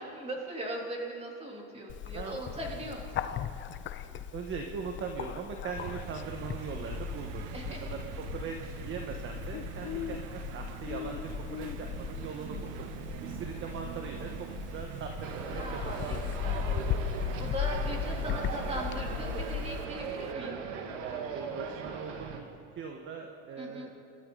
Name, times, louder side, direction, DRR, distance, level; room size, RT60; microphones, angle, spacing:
voice 1, 0.0-3.4 7.5-7.9 15.5-16.8 17.4-20.6 23.6-23.9, right 1 dB, 15° right, -1 dB, 3.3 m, -39 dB
Bird, 1.9-19.9, left 8 dB, 30° left, 0.7 m, -37 dB
voice 2, 4.0-12.9 13.2-16.3 20.3-22.5 22.8-23.9, right 5 dB, 35° right, 3 dB, 1.4 m, -41 dB
sound 1, 5.8-20.3, right 13 dB, 50° right, 0.7 m, -44 dB
sound 2, 15.2-22.4, right 6 dB, 85° right, 2.2 m, -39 dB
26.5 x 13.0 x 4.0 m, 3.0 s
supercardioid pair, 135°, 36 cm